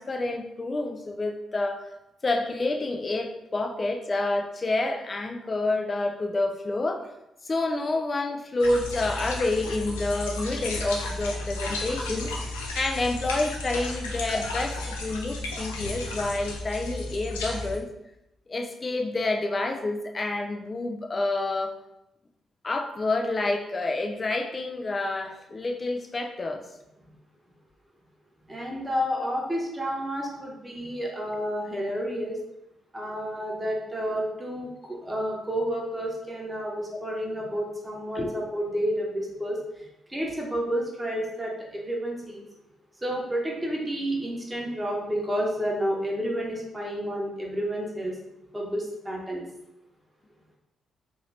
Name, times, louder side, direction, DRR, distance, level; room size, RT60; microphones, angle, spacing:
voice 1, 0.0-1.8 2.2-7.1 7.4-17.9 18.5-21.7 22.6-26.6 38.1-38.3, left 2 dB, 35° left, 4 dB, 0.5 m, -28 dB
sound 1, 8.6-17.8, left 2 dB, 90° left, 0.4 m, -33 dB
voice 2, 28.4-32.4 32.9-42.4 43.0-48.2 48.5-49.4, equal, 15° right, -2 dB, 1.0 m, -30 dB
2.7 x 2.7 x 3.2 m, 0.86 s
hypercardioid pair, 45°, 0 cm